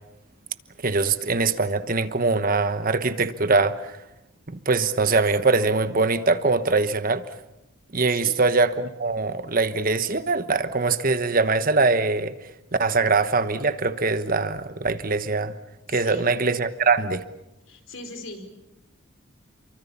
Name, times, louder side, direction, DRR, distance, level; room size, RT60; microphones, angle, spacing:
voice 1, 0.8-4.0 4.5-7.2 7.9-12.3 12.8-15.5 15.9-17.2, right 3 dB, 40° right, 1.2 m, -22 dB
voice 2, 8.1-8.4 15.9-16.3 17.7-18.5, left 2 dB, 65° left, 4.6 m, -39 dB
29.0 x 24.5 x 7.1 m
head